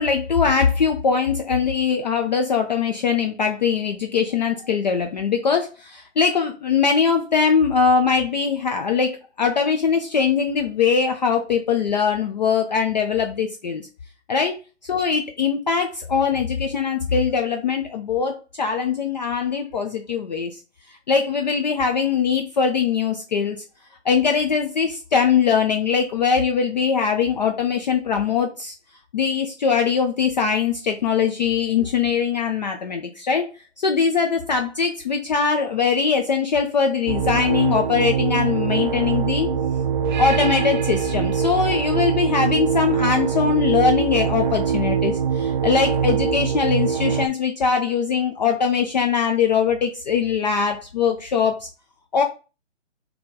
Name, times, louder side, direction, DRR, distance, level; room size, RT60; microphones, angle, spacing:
voice 1, 0.0-13.9 14.3-14.6 14.8-20.6 21.1-23.6 24.0-28.7 29.1-33.5 33.8-39.5 40.2-51.7 52.1-52.2, left 6 dB, 40° left, 5 dB, 0.4 m, -21 dB
sound 1, 37.1-47.3, right 7 dB, 40° right, 0.4 m, -23 dB
3.8 x 2.9 x 3.7 m, 0.33 s
hypercardioid pair, 145°, 36 cm